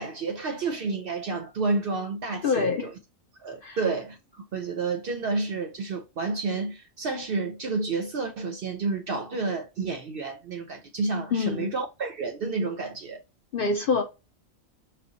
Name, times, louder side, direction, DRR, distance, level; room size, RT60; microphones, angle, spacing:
voice 1, 0.0-2.9 3.4-13.2, right 4 dB, 60° right, 0.6 m, -30 dB
voice 2, 2.4-2.9 3.6-3.8 11.3-11.7 13.5-14.0, left 4 dB, 60° left, 0.6 m, -25 dB
4.9 x 2.2 x 3.8 m
omnidirectional pair, 1.4 m